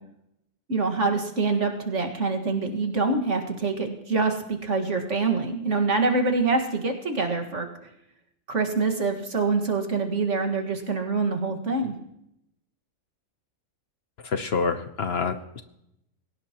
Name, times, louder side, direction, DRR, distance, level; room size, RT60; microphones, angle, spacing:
voice 1, 0.7-7.9 8.5-11.9, right 3 dB, 60° right, 3 dB, 2.2 m, -25 dB
voice 2, 14.2-15.6, left 4 dB, 55° left, 9 dB, 1.0 m, -27 dB
21.5 x 17.5 x 3.0 m, 0.81 s
omnidirectional pair, 1.4 m